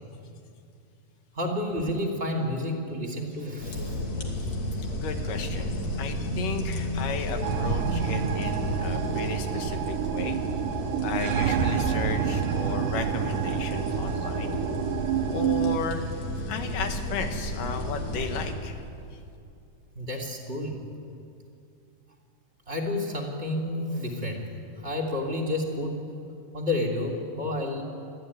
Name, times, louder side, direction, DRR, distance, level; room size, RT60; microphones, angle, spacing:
voice 1, 1.3-4.0 19.9-20.8 22.7-24.5 24.8-26.0 26.5-27.8, left 1 dB, 20° right, 3 dB, 2.7 m, -30 dB
sound 1, 3.6-18.5, equal, 55° left, 3.8 m, -32 dB
voice 2, 4.9-5.7 6.0-10.4 11.0-14.6 15.3-16.0 16.5-18.8, left 5 dB, 75° left, 6 dB, 3.0 m, -34 dB
sound 2, 7.4-15.8, right 9 dB, 75° right, 2.5 m, -29 dB
24.5 x 15.0 x 9.8 m, 2.5 s
omnidirectional pair, 3.9 m